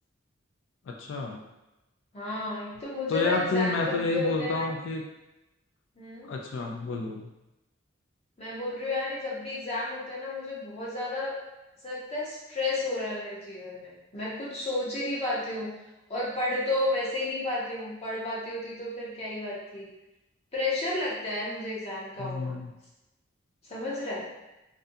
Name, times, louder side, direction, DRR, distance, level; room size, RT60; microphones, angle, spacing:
voice 1, 0.9-1.4 3.1-5.0 6.3-7.3 22.2-22.7, left 3 dB, 75° left, 1 dB, 0.3 m, -30 dB
voice 2, 2.1-4.7 6.0-6.3 8.4-11.4 11.8-15.7 16.1-19.9 20.5-22.6 23.6-24.3, left 2 dB, 30° left, -7 dB, 0.6 m, -32 dB
2.5 x 2.2 x 2.6 m, 0.96 s
head